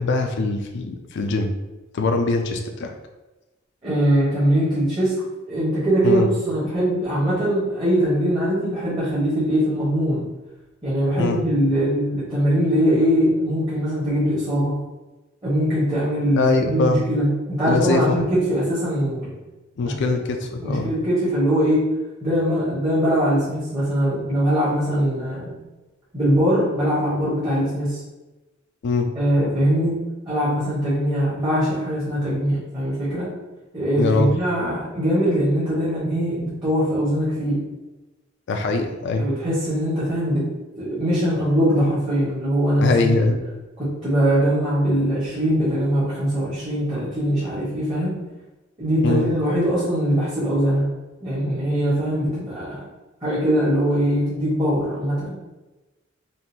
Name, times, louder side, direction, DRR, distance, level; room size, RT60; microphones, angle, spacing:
voice 1, 0.0-1.5 1.9-2.9 6.0-6.3 11.2-11.4 16.3-17.0 17.7-18.0 19.8-20.9 28.8-29.1 34.0-34.3 38.5-39.3 42.8-43.4 49.0-49.3, left 3 dB, 60° left, 5 dB, 0.4 m, -22 dB
voice 2, 3.8-5.1 5.5-10.3 10.8-14.7 15.4-19.3 19.8-20.1 20.6-21.9 22.2-25.5 26.1-28.0 29.1-33.3 33.7-37.6 39.2-40.5 40.8-43.1 43.8-48.2 48.8-50.9 51.2-52.8 53.2-55.4, equal, 20° right, -11 dB, 1.2 m, -21 dB
3.7 x 2.4 x 2.8 m, 1.1 s
head